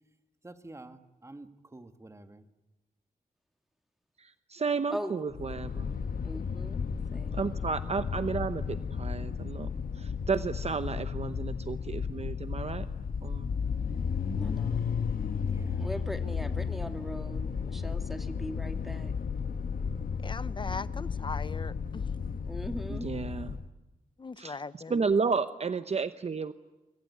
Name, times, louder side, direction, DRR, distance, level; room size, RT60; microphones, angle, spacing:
voice 1, 0.4-2.4 15.4-15.9, right 2 dB, 20° right, 9 dB, 1.8 m, -49 dB
voice 2, 4.5-5.9 7.3-9.7 10.0-12.9 13.2-13.5 22.9-23.6 24.4-26.5, right 5 dB, 45° right, 11 dB, 0.8 m, -32 dB
sound 1, 5.3-23.7, left 6 dB, 80° left, 1.3 m, -33 dB
voice 3, 6.2-7.4 14.3-14.9 15.8-19.1 22.5-23.1 24.9-25.2, equal, ahead, 6 dB, 2.3 m, -40 dB
voice 4, 20.2-22.1 24.2-24.9, left 4 dB, 35° left, 16 dB, 0.9 m, -39 dB
26.5 x 23.0 x 9.7 m, 1.1 s
wide cardioid pair, 135°, 15 cm